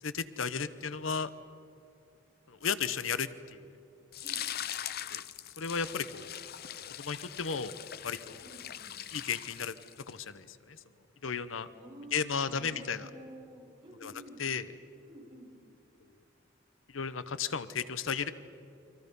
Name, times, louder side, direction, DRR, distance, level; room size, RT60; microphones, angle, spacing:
voice 1, 0.0-1.3 2.5-3.7 5.1-5.2 5.6-6.5 7.0-8.4 9.1-9.8 10.1-10.8 11.2-11.7 12.1-13.1 14.0-14.1 14.4-14.7 16.9-18.3, left 6 dB, 85° left, 13 dB, 0.9 m, -34 dB
sound 1, 4.1-10.2, left 11 dB, 50° left, 0.6 m, -41 dB
voice 2, 8.4-9.0 11.7-14.4 15.0-15.5, right 1 dB, 25° right, -4 dB, 6.4 m, -51 dB
29.5 x 24.5 x 5.4 m, 2.6 s
head